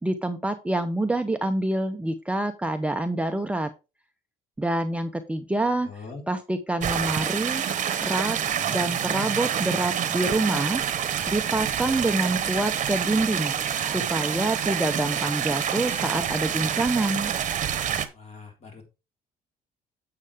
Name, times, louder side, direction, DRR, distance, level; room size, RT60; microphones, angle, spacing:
voice 1, 0.0-3.7 4.6-5.9 6.3-7.6 8.0-8.4 8.7-10.8 11.3-13.5 13.9-17.3, right 2 dB, 5° right, 6 dB, 0.7 m, -26 dB
voice 2, 5.8-6.2 18.1-18.8, left 4 dB, 40° left, 2 dB, 3.7 m, -42 dB
sound 1, 6.8-18.1, right 9 dB, 45° right, 1.0 m, -27 dB
8.2 x 6.6 x 3.5 m, 0.28 s
cardioid pair, 110°, 17 cm